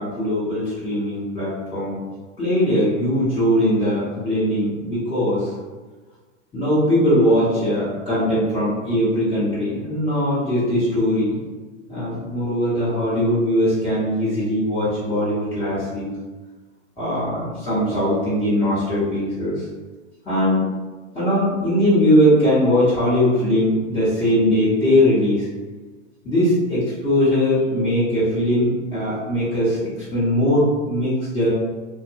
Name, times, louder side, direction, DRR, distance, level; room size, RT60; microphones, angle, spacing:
voice 1, 0.0-2.0 2.4-5.5 6.5-11.4 11.9-16.1 17.0-19.6 20.2-20.6 21.1-25.5 26.2-31.5, equal, 15° left, -15 dB, 1.1 m, -20 dB
2.6 x 2.2 x 2.6 m, 1.3 s
hypercardioid pair, 135°, 39 cm